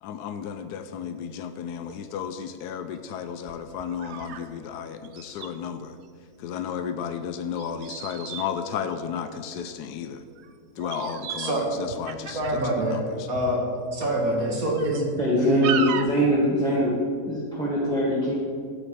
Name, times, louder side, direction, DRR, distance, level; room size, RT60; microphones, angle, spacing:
voice 1, 0.0-6.0 6.4-10.2 10.8-13.3, left 8 dB, 90° left, 9 dB, 1.2 m, -33 dB
sound 1, 1.1-1.2 1.8-1.9 2.5-2.6 3.5-4.5 4.8-4.9 5.0-5.5 7.6-9.7 10.4-10.5 10.8-11.6 11.9-12.7 13.3-13.6 14.1-14.2 14.7-15.3 15.6-16.2, right 8 dB, 90° right, 1.3 m, -35 dB
voice 2, 11.4-11.7 12.3-13.0 13.3-13.6 13.9-15.0 15.4-15.7, right 1 dB, 60° right, -2 dB, 2.7 m, -25 dB
voice 3, 15.2-16.9 17.2-18.3, equal, 5° left, -7 dB, 1.6 m, -23 dB
13.0 x 8.1 x 5.0 m, 2.1 s
omnidirectional pair, 1.7 m